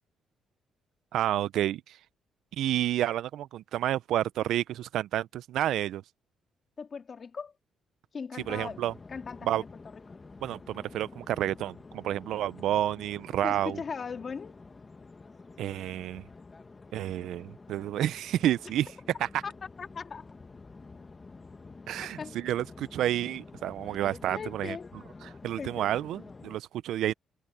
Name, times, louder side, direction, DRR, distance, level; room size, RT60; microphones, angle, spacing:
voice 1, 1.1-2.0 2.6-6.0 8.5-8.9 9.4-9.6 10.4-13.8 15.6-16.2 16.9-18.9 19.2-19.3 21.9-24.8 25.2-27.1, right 12 dB, 80° right, 0.5 m, -30 dB
voice 2, 6.8-7.5 8.1-8.8 9.1-9.7 13.4-14.6 19.4-19.5 19.8-20.3 22.2-22.4 24.3-24.9 25.6-26.0, left 5 dB, 45° left, 2.6 m, -38 dB
sound 1, 8.4-26.6, left 3 dB, 25° left, 1.6 m, -49 dB
cardioid pair, 90°, 0 cm